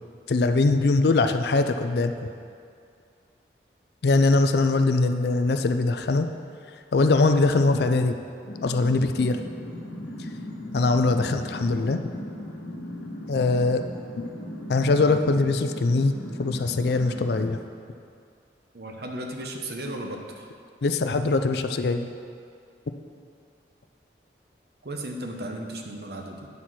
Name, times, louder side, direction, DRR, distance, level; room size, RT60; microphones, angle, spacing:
voice 1, 0.3-2.1 4.0-6.3 6.9-8.2 8.6-9.4 10.7-12.0 13.3-13.8 14.7-16.1 16.4-17.6 20.8-22.1, left 3 dB, 65° left, 8 dB, 0.4 m, -22 dB
sound 1, 8.4-17.5, left 1 dB, 80° left, 1.4 m, -37 dB
voice 2, 18.7-20.5 24.8-26.5, right 1 dB, 60° right, 2 dB, 0.8 m, -35 dB
9.5 x 4.3 x 6.0 m, 2.3 s
head